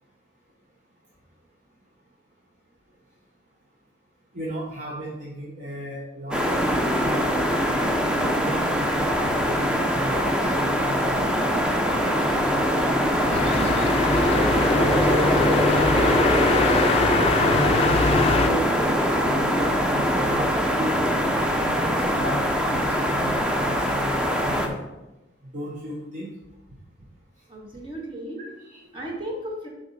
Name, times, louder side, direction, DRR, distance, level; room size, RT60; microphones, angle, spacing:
voice 1, 4.3-7.4 8.3-11.3 11.8-15.4 15.9-16.5 17.4-18.9 19.2-21.0 21.7-24.1 24.4-24.8 25.5-26.3 28.6-28.8, right 1 dB, 45° right, -3 dB, 0.9 m, -35 dB
sound 1, 6.3-24.7, equal, 5° right, 0.7 m, -22 dB
sound 2, 13.3-18.5, left 4 dB, 35° left, 0.4 m, -24 dB
voice 2, 27.5-28.4 28.9-29.7, equal, 30° right, -2 dB, 1.7 m, -34 dB
6.8 x 5.3 x 4.2 m, 1.0 s
head